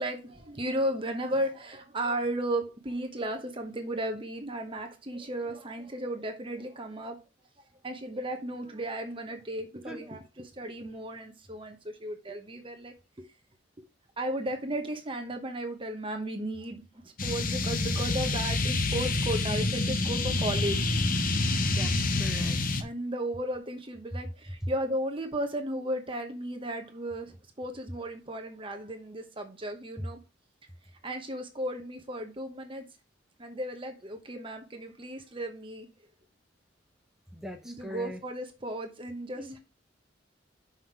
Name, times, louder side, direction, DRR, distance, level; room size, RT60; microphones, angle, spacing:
voice 1, 0.0-7.2 7.8-13.3 13.8-13.9 14.2-20.9 22.8-30.2 31.0-32.9 33.4-35.9 37.6-39.6, right 1 dB, 30° right, 1.0 m, -35 dB
sound 1, 17.2-22.8, left 2 dB, 50° left, 1.1 m, -28 dB
voice 2, 17.6-18.0 18.7-18.8 21.4-22.6 24.1-24.2 24.6-24.7 30.0-30.1 37.3-38.2 39.4-39.6, equal, ahead, 1.1 m, -37 dB
5.8 x 5.7 x 4.6 m
head